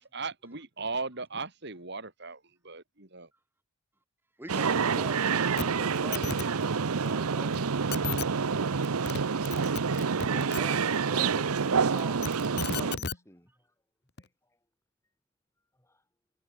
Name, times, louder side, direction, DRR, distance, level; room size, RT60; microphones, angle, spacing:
voice 1, 0.0-3.3, right 4 dB, 50° right, 3.3 m, -37 dB
sound 1, 4.5-13.0, right 5 dB, 85° right, 0.7 m, -28 dB
sound 2, 5.6-5.7 5.9-6.4 7.5-7.6 7.9-8.3 8.8-9.2 9.4-10.6 12.0-13.2 14.2-14.3, left 5 dB, 50° left, 1.3 m, -34 dB
voice 2, 8.4-9.9 12.9-13.5 14.2-14.3 15.8-16.0, left 1 dB, 15° left, 6.1 m, -57 dB
voice 3, 10.1-13.0, right 1 dB, 10° right, 1.2 m, -46 dB
head